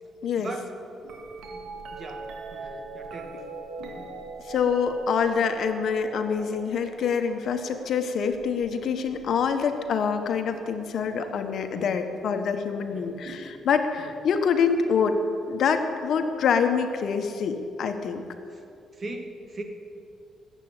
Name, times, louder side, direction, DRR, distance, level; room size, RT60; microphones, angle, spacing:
voice 1, 0.4-0.8 1.5-3.5 3.8-4.2 11.7-12.1 12.9-13.3 14.0-14.1 18.5-18.6 18.9-19.6, right 2 dB, 40° right, 5 dB, 2.0 m, -40 dB
sound 1, 1.0-11.1 12.1-12.5 13.2-14.2 16.0-16.1, right 3 dB, 80° right, 2.0 m, -42 dB
voice 2, 4.5-15.2 15.5-18.2, left 6 dB, 65° left, 7 dB, 1.4 m, -26 dB
20.0 x 8.5 x 8.5 m, 2.5 s
cardioid pair, 90°, 0 cm